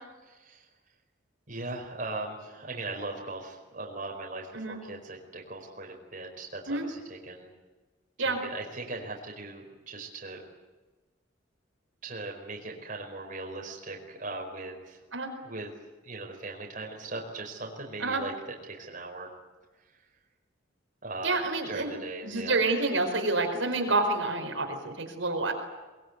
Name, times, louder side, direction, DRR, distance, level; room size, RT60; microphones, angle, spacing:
voice 1, 0.3-0.6 1.5-7.5 8.2-10.4 12.0-15.0 15.4-15.7 16.0-18.3 18.6-19.3 21.0-22.6, right 2 dB, 40° right, 1 dB, 4.8 m, -39 dB
voice 2, 21.2-21.9 22.2-25.5, right 3 dB, 75° right, 3 dB, 4.8 m, -28 dB
23.0 x 22.0 x 9.5 m, 1.2 s
head